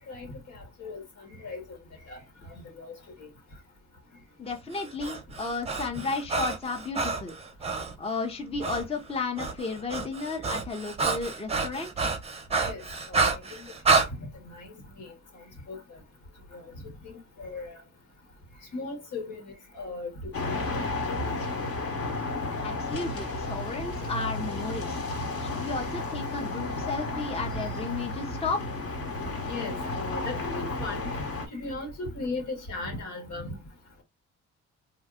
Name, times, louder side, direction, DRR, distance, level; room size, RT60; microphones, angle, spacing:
voice 1, 0.1-1.8 2.1-3.3 12.6-15.1 15.7-15.8 16.5-16.6 17.0-17.8 18.7-19.4 19.7-20.8 21.2-21.3 29.5-31.1 31.5-33.6, left 3 dB, 75° left, 1.6 m, -38 dB
voice 2, 4.4-7.3 8.0-12.1 22.6-25.0 25.4-28.6, left 4 dB, 20° left, 0.6 m, -33 dB
Breathing, 4.7-7.9 8.6-8.8 9.1-14.1, right 4 dB, 20° right, 0.6 m, -29 dB
sound 1, 20.3-31.5, left 2 dB, 50° left, 1.1 m, -32 dB
2.8 x 2.2 x 3.5 m
cardioid pair, 90°, 30 cm